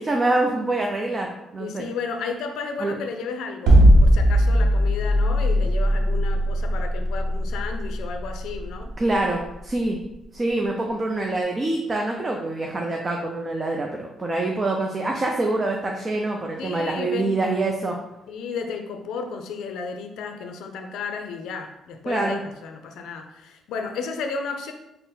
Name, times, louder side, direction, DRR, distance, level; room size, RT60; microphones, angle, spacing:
voice 1, 0.0-1.9 2.8-2.9 9.0-10.0 10.3-18.0 22.1-22.4, right 2 dB, 30° right, 1 dB, 0.4 m, -25 dB
voice 2, 1.6-8.9 10.7-11.0 16.6-17.4 18.3-24.7, left 5 dB, 85° left, 5 dB, 0.4 m, -33 dB
sound 1, 3.7-9.8, equal, 80° right, 0.7 m, -18 dB
3.8 x 2.0 x 4.1 m, 0.88 s
cardioid pair, 90°, 0 cm